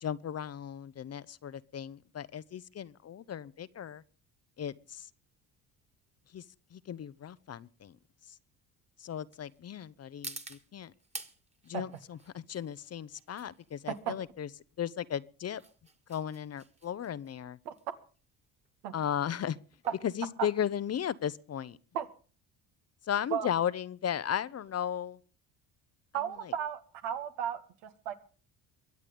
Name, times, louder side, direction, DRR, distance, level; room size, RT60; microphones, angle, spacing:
voice 1, 0.0-4.0 4.6-5.1 6.3-6.4 6.7-8.0 8.3-8.4 9.0-10.9 11.6-14.5 14.8-15.6 16.1-17.6 18.9-19.6 20.0-21.8 23.0-25.2 26.4-26.5, left 9 dB, 40° left, 0.8 m, -35 dB
sound 1, 4.8-21.3, right 2 dB, 15° right, 1.9 m, -52 dB
voice 2, 26.1-28.1, right 9 dB, 80° right, 2.0 m, -35 dB
23.0 x 8.4 x 5.2 m
supercardioid pair, 75°, 40 cm